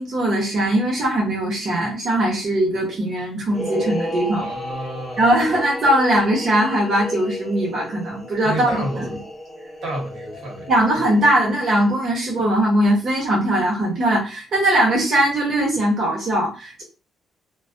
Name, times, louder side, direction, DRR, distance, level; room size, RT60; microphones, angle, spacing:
voice 1, 0.0-4.5 5.2-9.1 10.7-16.8, right 1 dB, 55° right, 0.9 m, -20 dB
sound 1, 3.5-12.1, left 1 dB, 15° left, 0.9 m, -33 dB
voice 2, 4.3-5.3 8.4-9.1 9.8-10.7, right 1 dB, 80° right, 1.3 m, -30 dB
2.3 x 2.3 x 2.5 m
cardioid pair, 90°, 0 cm